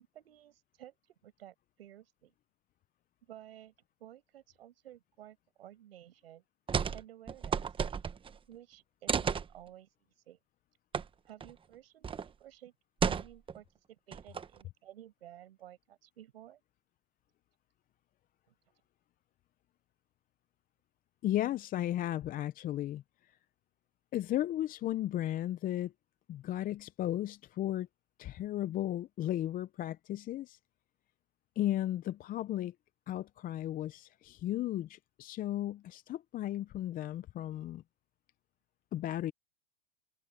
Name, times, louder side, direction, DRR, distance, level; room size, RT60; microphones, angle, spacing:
voice 1, 0.0-2.3 3.2-3.7 4.0-6.4 6.9-7.6 8.5-9.9 10.3-10.4 11.3-12.7 13.0-16.6 18.5-18.6, right 12 dB, 80° right, 7.0 m, -54 dB
sound 1, 6.7-7.0 7.3-8.4 9.1-9.5 10.9-11.0 11.4-11.5 12.0-12.3 13.0-13.6 14.1-14.6, right 6 dB, 15° right, 1.1 m, -32 dB
voice 2, 21.2-23.4 24.1-25.9 26.3-27.9 28.2-30.6 31.6-32.7 33.1-37.8 38.9-39.3, left 13 dB, 30° left, 0.7 m, -35 dB
open air
hypercardioid pair, 115°, 30 cm